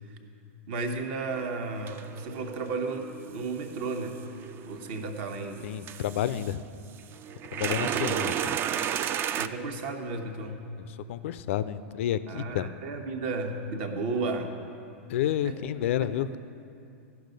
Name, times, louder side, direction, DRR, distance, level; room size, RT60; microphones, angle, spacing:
voice 1, 0.7-4.2 4.7-5.8 7.5-8.3 9.3-10.7 12.3-14.6 15.4-15.6 16.0-16.3, right 3 dB, 55° right, 5 dB, 1.1 m, -34 dB
sound 1, 1.3-1.4 1.9-5.2 5.8-6.5 7.0-9.5, right 9 dB, 30° right, 0.3 m, -33 dB
voice 2, 5.6-6.6 7.5-8.6 10.8-12.7 15.1-16.4, left 11 dB, 65° left, 14 dB, 0.4 m, -30 dB
14.5 x 5.8 x 5.2 m, 2.5 s
hypercardioid pair, 115°, 7 cm